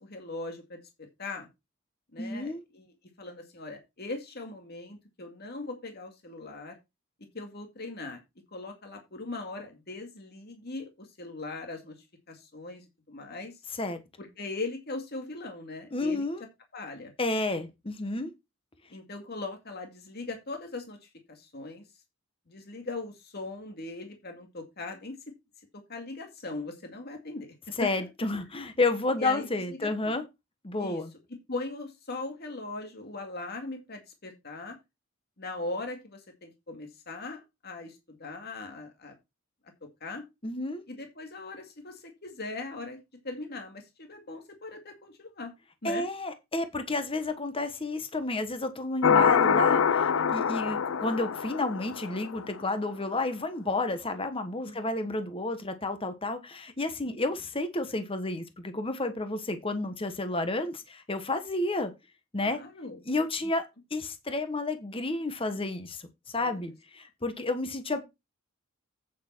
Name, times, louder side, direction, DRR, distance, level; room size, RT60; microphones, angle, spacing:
voice 1, 0.0-1.5 2.1-6.7 7.3-8.2 8.5-11.9 12.3-13.5 14.2-16.2 16.7-17.1 18.9-21.8 22.5-25.2 25.7-27.5 29.2-29.5 29.8-30.1 30.8-31.0 31.5-34.8 35.4-39.2 40.0-40.2 40.9-43.0 43.2-45.5 45.8-46.1 54.7-54.8 57.0-57.1 62.4-63.0 66.4-66.6, left 2 dB, 50° left, 2.2 m, -40 dB
voice 2, 2.2-2.6 13.8-14.0 15.9-16.4 17.2-18.3 27.8-30.2 30.6-31.1 40.4-40.8 45.8-61.9 62.3-62.6 63.1-63.6 63.9-68.0, left 2 dB, 25° left, 1.3 m, -31 dB
sound 1, 49.0-52.4, left 7 dB, 80° left, 0.6 m, -25 dB
8.8 x 6.7 x 4.5 m
head